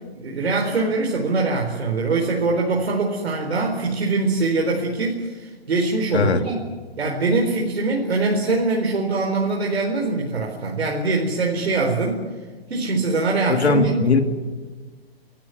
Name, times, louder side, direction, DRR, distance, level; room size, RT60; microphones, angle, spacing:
voice 1, 0.2-6.6 7.0-12.2 12.7-14.2, right 3 dB, 85° right, 0 dB, 4.2 m, -23 dB
voice 2, 13.5-14.2, left 4 dB, 90° left, 6 dB, 2.8 m, -19 dB
28.0 x 13.5 x 9.6 m, 1.4 s
hypercardioid pair, 160°, 31 cm